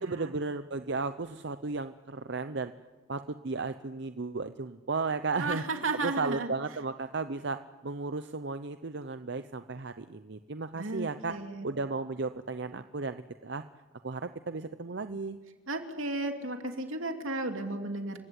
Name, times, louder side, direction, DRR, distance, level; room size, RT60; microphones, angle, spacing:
voice 1, 0.0-2.7 3.1-11.3 11.6-13.6 14.0-15.4, right 3 dB, 55° right, 10 dB, 0.7 m, -34 dB
voice 2, 5.4-6.5 10.7-11.7 15.7-18.2, right 2 dB, 80° right, 5 dB, 2.7 m, -34 dB
28.5 x 16.0 x 9.8 m, 1.3 s
head